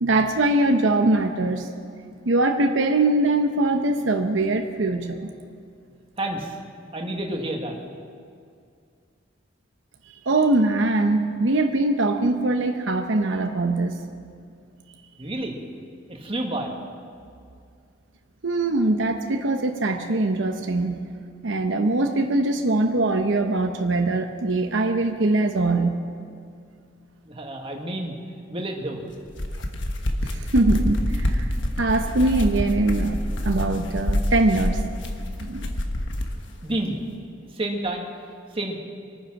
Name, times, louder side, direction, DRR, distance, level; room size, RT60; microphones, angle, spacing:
voice 1, 0.0-1.7 2.2-5.3 10.2-14.0 18.4-21.0 21.4-26.0 30.2-31.5 31.8-34.8 35.4-35.7, right 2 dB, 75° right, 5 dB, 0.9 m, -22 dB
voice 2, 6.2-6.6 6.9-7.8 15.2-15.6 16.1-16.7 27.2-28.1 28.5-29.0 36.6-37.0 37.5-38.1 38.5-38.8, right 1 dB, 30° right, 1 dB, 1.7 m, -29 dB
sound 1, 29.2-36.4, left 1 dB, 70° left, 1.3 m, -26 dB
23.5 x 9.5 x 5.9 m, 2.3 s
head